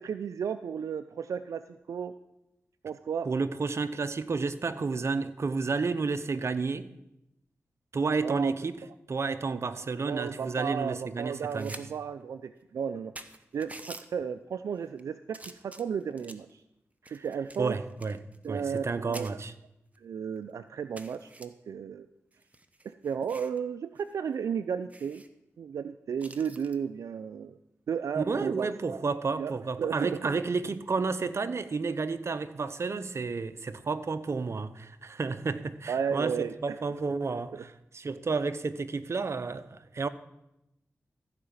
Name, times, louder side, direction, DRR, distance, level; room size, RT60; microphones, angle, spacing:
voice 1, 0.0-2.1 2.8-3.3 8.2-8.5 10.0-13.1 13.5-16.6 17.1-17.8 18.4-19.4 20.0-22.1 22.8-25.2 25.6-27.6 27.9-29.0 29.4-29.5 29.8-30.2 35.9-36.8 37.3-37.7, right 7 dB, 85° right, 0.4 m, -34 dB
voice 2, 3.3-6.9 7.9-8.8 9.1-11.8 17.2-17.3 17.6-19.5 28.2-36.3 36.6-40.1, right 4 dB, 60° right, 0.7 m, -31 dB
Matchbox Open and Close, 11.3-11.8 12.2-12.3 12.8-12.9 13.2-14.1 14.7-15.0 15.3-16.5 17.1-18.9 19.1-19.3 19.9-20.0 20.4-20.5 21.0-21.5 22.3-23.6 24.0-24.1 24.4-24.5 24.9-25.3 26.2-26.8 28.5-28.7, right 2 dB, 25° right, 1.0 m, -47 dB
14.5 x 4.9 x 7.1 m
cardioid pair, 45°, 5 cm